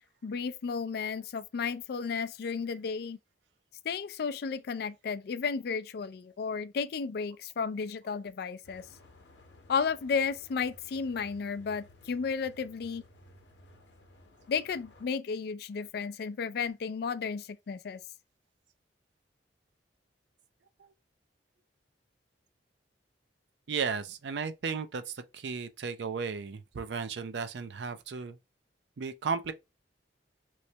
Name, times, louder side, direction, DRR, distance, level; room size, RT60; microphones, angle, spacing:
voice 1, 0.2-3.2 3.8-8.8 9.7-13.0 14.5-18.0, left 5 dB, 60° left, 0.3 m, -33 dB
sound 1, 8.6-15.1, left 1 dB, 75° left, 0.7 m, -57 dB
voice 2, 23.7-28.4 29.0-29.5, right 5 dB, 75° right, 0.4 m, -35 dB
3.2 x 3.1 x 2.8 m
head